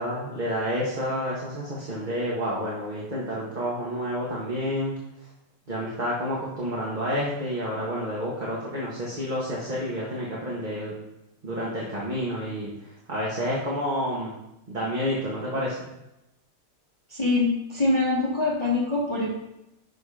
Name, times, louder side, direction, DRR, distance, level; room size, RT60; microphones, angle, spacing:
voice 1, 0.0-5.0 5.7-10.9 11.4-14.3 14.7-15.8, equal, 25° right, -6 dB, 1.8 m, -29 dB
voice 2, 17.1-19.3, left 3 dB, 15° left, -5 dB, 1.6 m, -24 dB
11.0 x 4.3 x 5.0 m, 0.89 s
omnidirectional pair, 1.9 m